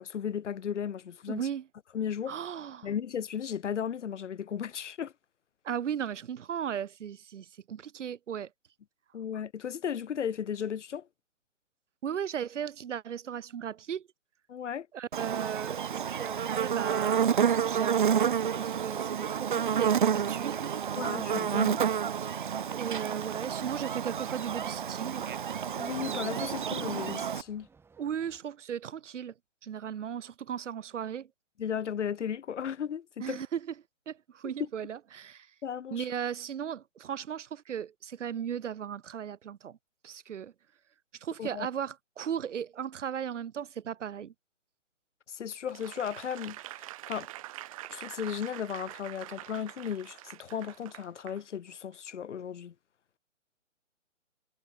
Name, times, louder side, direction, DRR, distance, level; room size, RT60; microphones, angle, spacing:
voice 1, 0.0-1.5 1.9-2.4 2.8-5.1 9.1-11.1 14.5-14.9 21.0-21.8 25.8-27.7 31.6-33.4 35.6-36.1 41.4-41.7 45.3-47.3 47.9-52.7, left 8 dB, 65° left, 1.0 m, -35 dB
voice 2, 1.3-1.6 2.3-2.9 5.6-8.5 12.0-14.1 14.9-17.2 17.6-20.7 22.7-25.2 28.0-29.3 29.6-31.3 33.2-33.7 34.1-35.5 35.9-39.8 40.0-40.5 41.2-44.3, right 8 dB, 70° right, 0.9 m, -36 dB
Buzz, 15.1-27.4, right 8 dB, 45° right, 0.4 m, -29 dB
sound 1, 23.2-28.4, right 5 dB, 5° right, 6.0 m, -60 dB
Applause / Crowd, 45.7-51.4 51.9-52.1, right 16 dB, 25° right, 1.8 m, -45 dB
hypercardioid pair, 155°, 38 cm